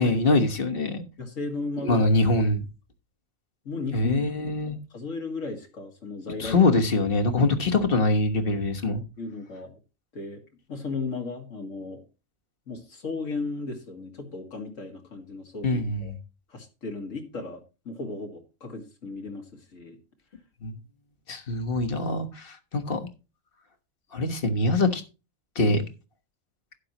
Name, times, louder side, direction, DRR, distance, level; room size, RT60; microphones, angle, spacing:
voice 1, 0.0-1.0 1.8-2.6 3.9-4.8 6.4-9.0 15.6-16.2 20.6-20.7 21.3-23.1 24.1-25.0 25.5-25.8, left 2 dB, 45° left, 7 dB, 1.4 m, -24 dB
voice 2, 1.2-2.1 3.6-4.5 4.9-6.6 9.2-9.7 10.1-10.4 10.7-12.1 12.7-16.1 16.5-20.0, left 3 dB, 75° left, 3 dB, 2.4 m, -35 dB
11.5 x 9.3 x 2.9 m, 0.30 s
omnidirectional pair, 1.3 m